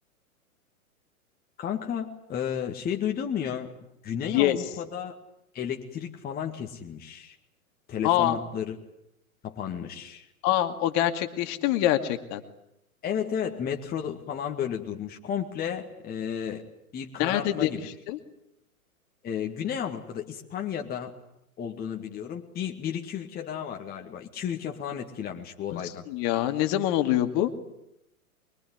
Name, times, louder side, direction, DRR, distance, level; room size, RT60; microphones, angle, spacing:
voice 1, 1.6-3.7 4.0-5.2 5.5-7.4 7.9-8.8 9.4-10.3 13.0-16.6 16.9-17.9 19.2-21.1 21.6-26.0, left 8 dB, 20° left, 2 dB, 2.1 m, -33 dB
voice 2, 8.0-8.4 10.4-12.4 17.2-17.7 18.1-18.2 25.7-25.8 26.1-27.5, left 13 dB, 35° left, 8 dB, 2.4 m, -24 dB
24.0 x 23.0 x 9.6 m, 0.82 s
hypercardioid pair, 120°, 44 cm